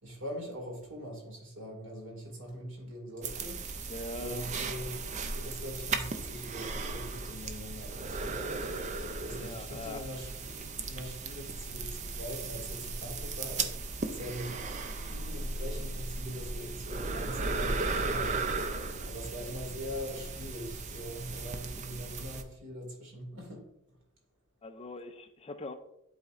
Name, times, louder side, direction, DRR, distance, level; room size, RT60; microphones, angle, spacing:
voice 1, 0.0-3.7 4.2-5.0 5.3-8.4 9.2-10.3 10.9-13.7 14.0-14.6 15.1-18.4 19.0-23.6, equal, 60° right, 2.2 m, -42 dB
sound 1, 3.2-22.4, right 3 dB, 35° right, 0.5 m, -36 dB
voice 2, 3.9-4.5 9.3-10.1 24.6-25.7, left 2 dB, 30° left, 0.4 m, -42 dB
11.0 x 4.2 x 2.5 m
head